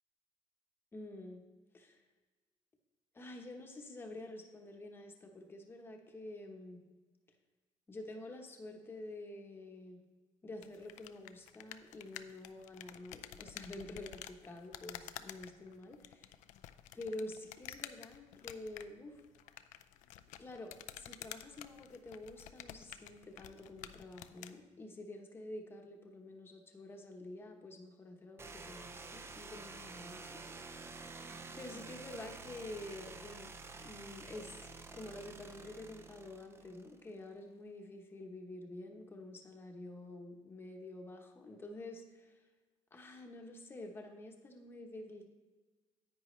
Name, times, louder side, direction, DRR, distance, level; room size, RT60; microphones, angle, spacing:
voice 1, 0.9-1.4 1.7-2.0 3.1-6.8 7.9-10.0 10.4-16.4 16.9-19.2 20.4-30.9 31.5-33.5 33.8-42.4 42.9-45.4, left 2 dB, 20° left, 3 dB, 1.0 m, -48 dB
sound 1, 10.6-24.6, left 12 dB, 80° left, 0.5 m, -51 dB
sound 2, 28.4-37.1, right 3 dB, 20° right, 0.5 m, -50 dB
10.0 x 8.9 x 3.2 m, 1.4 s
cardioid pair, 160°, 12 cm